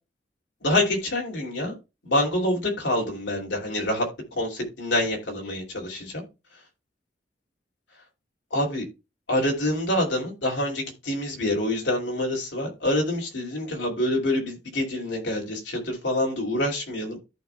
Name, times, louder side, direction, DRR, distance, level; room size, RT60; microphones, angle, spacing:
voice 1, 0.6-1.7 2.0-4.1 4.4-6.2 8.5-8.9 9.3-17.2, left 1 dB, 85° left, 0 dB, 2.6 m, -26 dB
14.0 x 5.1 x 2.2 m, 0.27 s
head